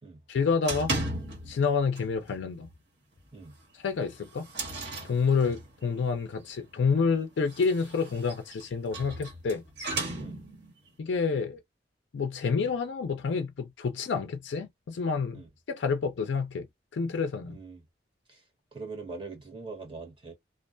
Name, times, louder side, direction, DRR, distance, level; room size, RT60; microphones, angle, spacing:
voice 1, 0.3-1.0 1.5-2.7 3.7-4.5 5.0-9.6 11.0-11.6 12.1-15.4 15.7-16.7 16.9-17.6, left 5 dB, 85° left, 0.4 m, -28 dB
sound 1, 0.6-1.7 2.0-2.3 2.6-2.7 3.2-3.3 3.9-5.8 7.3-10.7, right 2 dB, 70° right, 1.3 m, -36 dB
voice 2, 17.5-17.8 18.3-18.4 18.7-20.3, right 3 dB, 30° right, 1.1 m, -42 dB
2.4 x 2.2 x 2.4 m
head